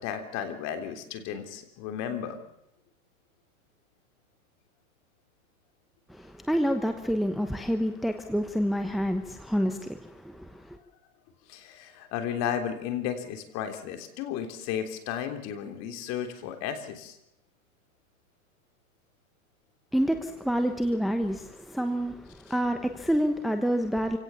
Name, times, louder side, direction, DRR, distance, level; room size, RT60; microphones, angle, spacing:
voice 1, 0.0-2.4 11.5-17.2 22.5-22.6, left 9 dB, 35° left, 7 dB, 3.5 m, -34 dB
voice 2, 6.1-10.8 19.9-24.2, equal, ahead, 6 dB, 1.0 m, -28 dB
27.5 x 17.5 x 7.1 m, 0.82 s
hypercardioid pair, 130°, 44 cm